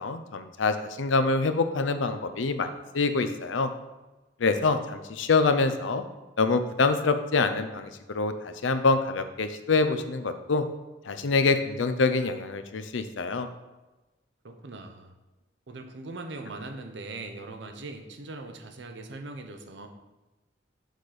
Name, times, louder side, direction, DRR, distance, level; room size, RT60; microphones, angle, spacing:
voice 1, 0.0-3.7 4.4-6.0 6.4-10.6 11.1-13.5, left 3 dB, 90° left, 9 dB, 0.6 m, -25 dB
voice 2, 14.4-15.1 15.7-19.9, right 2 dB, 65° right, 5 dB, 0.8 m, -40 dB
6.5 x 4.2 x 4.9 m, 1.1 s
head